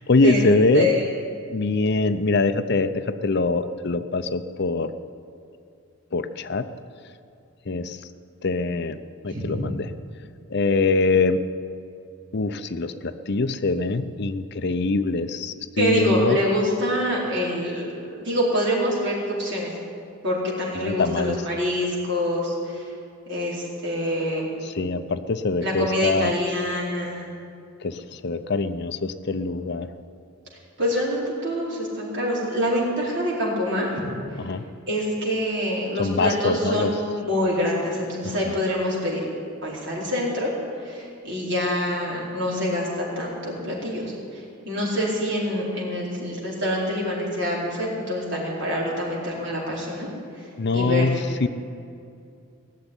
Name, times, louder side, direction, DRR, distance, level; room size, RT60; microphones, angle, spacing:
voice 1, 0.1-0.9 1.5-4.9 6.1-6.7 7.7-8.0 8.4-9.0 9.2-9.9 10.5-11.4 12.3-16.4 20.7-21.4 24.6-26.3 27.8-29.9 34.4-34.6 36.0-36.9 38.2-38.6 50.6-51.5, left 3 dB, 50° left, 11 dB, 0.6 m, -23 dB
voice 2, 15.8-17.9 18.1-19.7 20.2-22.8 23.3-24.5 25.6-27.2 30.8-33.9 34.9-36.9 37.1-39.2 39.6-40.5 40.8-44.1 44.6-50.1 50.7-51.0, equal, 55° right, -4 dB, 4.4 m, -25 dB
18.5 x 7.3 x 9.9 m, 2.5 s
head